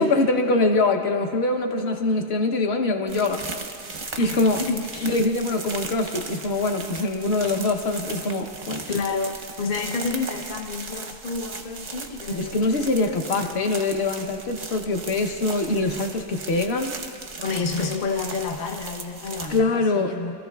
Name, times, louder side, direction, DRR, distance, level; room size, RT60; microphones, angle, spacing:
voice 1, 0.0-3.5 4.2-4.6 5.0-8.8 12.3-17.0 19.5-20.2, left 2 dB, 50° left, 5 dB, 0.9 m, -23 dB
sound 1, 3.1-19.6, right 3 dB, 45° right, 0.5 m, -37 dB
voice 2, 4.2-5.1 8.9-13.1 13.4-13.7 17.4-20.4, left 4 dB, 75° left, 3 dB, 0.4 m, -30 dB
26.5 x 14.0 x 2.3 m, 2.5 s
omnidirectional pair, 1.8 m